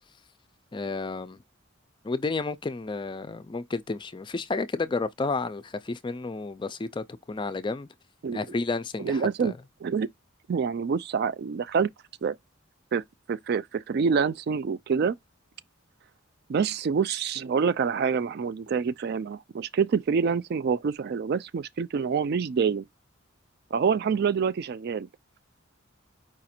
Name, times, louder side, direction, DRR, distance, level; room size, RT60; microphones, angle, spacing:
voice 1, 0.7-1.4 2.0-7.9 8.3-9.6, left 3 dB, 25° left, 0.4 m, -31 dB
voice 2, 9.0-9.5 9.8-10.1 10.5-11.9 12.2-12.3 12.9-13.0 13.3-15.1 16.5-22.8 23.7-25.1, right 6 dB, 50° right, 0.3 m, -26 dB
4.9 x 2.5 x 4.2 m
head